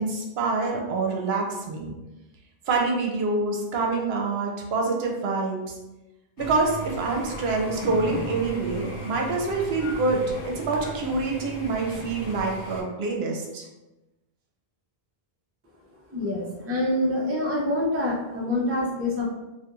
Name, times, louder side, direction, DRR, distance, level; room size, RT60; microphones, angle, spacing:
voice 1, 0.0-1.9 2.7-5.6 6.4-13.7, right 3 dB, 80° right, 1 dB, 0.8 m, -26 dB
sound 1, 6.4-12.8, equal, 45° left, 0.5 m, -37 dB
voice 2, 15.9-19.3, left 1 dB, 20° right, -3 dB, 0.4 m, -26 dB
2.4 x 2.3 x 2.9 m, 1.0 s
omnidirectional pair, 1.0 m